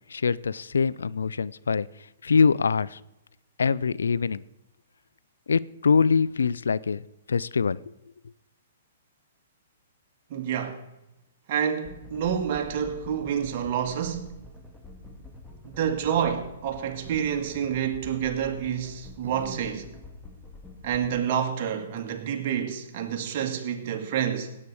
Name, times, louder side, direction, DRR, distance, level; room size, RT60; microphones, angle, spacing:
voice 1, 0.1-1.9 2.2-3.0 3.6-4.4 5.5-7.0 7.3-7.8, left 5 dB, 85° left, 0.4 m, -23 dB
voice 2, 10.3-10.8 11.5-14.3 15.6-20.0 20.8-24.6, right 8 dB, 50° right, 1.9 m, -28 dB
sound 1, 11.8-21.2, left 2 dB, 5° left, 1.9 m, -47 dB
sound 2, 17.1-17.6 18.5-19.6 19.9-20.0 21.7-21.8 22.0-22.4, right 8 dB, 65° right, 1.6 m, -42 dB
17.0 x 8.6 x 4.8 m
hypercardioid pair, 130°, 0 cm